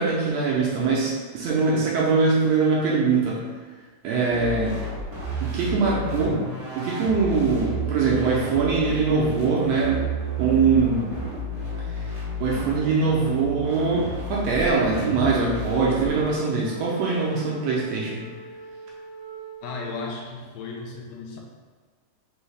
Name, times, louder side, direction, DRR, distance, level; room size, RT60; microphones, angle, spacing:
voice 1, 0.0-3.5 4.0-4.8 5.4-6.4 6.8-10.0 10.4-11.1 11.8-18.3, right 4 dB, 80° right, -4 dB, 1.6 m, -23 dB
sound 1, 4.3-16.3, right 2 dB, 60° right, 0.9 m, -31 dB
Wind instrument woodwind instrument, 15.8-20.2, right 4 dB, 65° left, 1.7 m, -40 dB
voice 2, 19.6-21.4, left 3 dB, 80° left, -1 dB, 1.7 m, -35 dB
5.4 x 2.7 x 3.3 m, 1.4 s
omnidirectional pair, 3.6 m